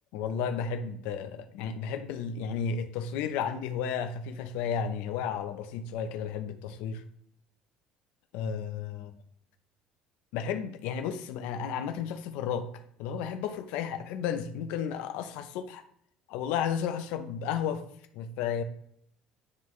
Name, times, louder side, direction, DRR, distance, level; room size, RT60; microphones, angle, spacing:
voice 1, 0.1-7.0 8.3-9.1 10.3-12.7 13.0-15.8 16.3-17.8 18.1-18.6, left 7 dB, 80° left, 0.6 m, -33 dB
9.7 x 3.8 x 3.1 m
cardioid pair, 175°, 2 cm